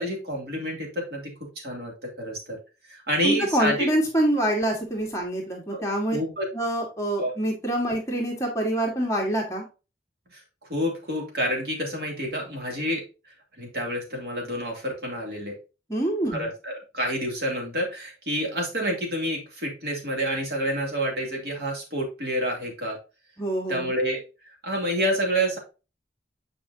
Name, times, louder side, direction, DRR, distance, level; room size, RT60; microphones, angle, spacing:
voice 1, 0.0-1.3 1.6-2.6 2.9-3.9 5.7-5.8 6.1-6.5 7.2-7.3 10.3-10.4 10.7-13.0 13.6-15.6 16.3-23.0 23.7-25.6, equal, 60° right, 0 dB, 2.6 m, -28 dB
voice 2, 3.2-6.2 6.5-9.7 15.9-16.5 23.4-23.9, right 1 dB, 15° left, -1 dB, 1.7 m, -26 dB
7.6 x 5.0 x 2.7 m, 0.30 s
head